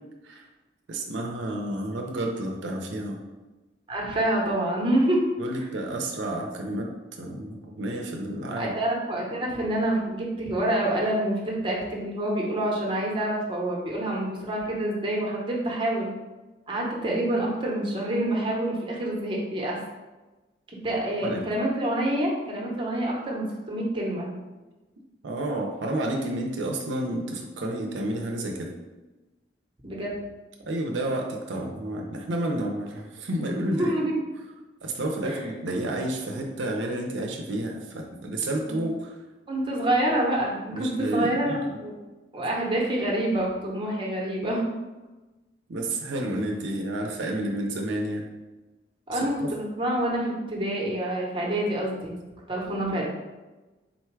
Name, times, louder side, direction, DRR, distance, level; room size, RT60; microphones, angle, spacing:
voice 1, 0.9-3.2 5.4-8.7 21.2-21.4 25.2-28.7 30.7-33.9 34.8-39.2 40.7-41.8 45.7-48.3 49.1-49.5, right 1 dB, 85° right, 2 dB, 0.5 m, -30 dB
voice 2, 3.9-5.3 8.6-16.1 16.7-19.8 20.8-24.3 29.8-30.1 33.7-34.2 35.2-35.5 38.6-38.8 39.5-41.9 42.3-44.6 49.1-52.2 52.5-53.1, right 1 dB, 30° right, -2 dB, 0.9 m, -27 dB
3.9 x 2.2 x 4.5 m, 1.1 s
head